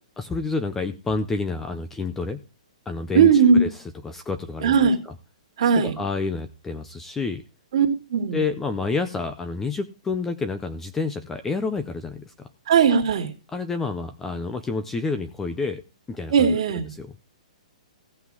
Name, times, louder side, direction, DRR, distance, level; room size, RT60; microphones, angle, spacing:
voice 1, 0.2-2.4 2.9-3.3 3.5-3.7 4.0-4.9 5.8-7.4 8.3-12.3 13.5-15.8 16.1-17.1, left 4 dB, 5° left, 10 dB, 0.5 m, -29 dB
voice 2, 3.1-3.6 4.6-5.0 5.6-6.0 7.7-8.4 12.7-13.3 16.3-16.9, right 6 dB, 45° right, 3 dB, 2.2 m, -18 dB
16.0 x 5.9 x 4.7 m, 0.31 s
hypercardioid pair, 170°, 4 cm